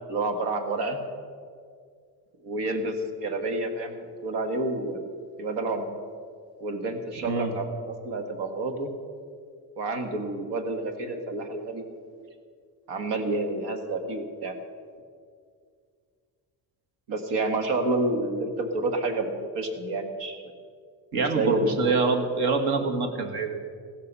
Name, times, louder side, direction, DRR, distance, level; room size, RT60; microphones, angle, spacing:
voice 1, 0.1-1.0 2.4-5.0 5.4-5.9 6.6-7.7 8.0-8.9 9.8-11.8 12.9-14.6 17.1-20.4 21.1-22.0, right 2 dB, 80° right, 6 dB, 2.0 m, -29 dB
voice 2, 21.1-23.6, right 4 dB, 65° right, 5 dB, 1.9 m, -25 dB
15.5 x 13.5 x 5.5 m, 2.1 s
cardioid pair, 145°, 40 cm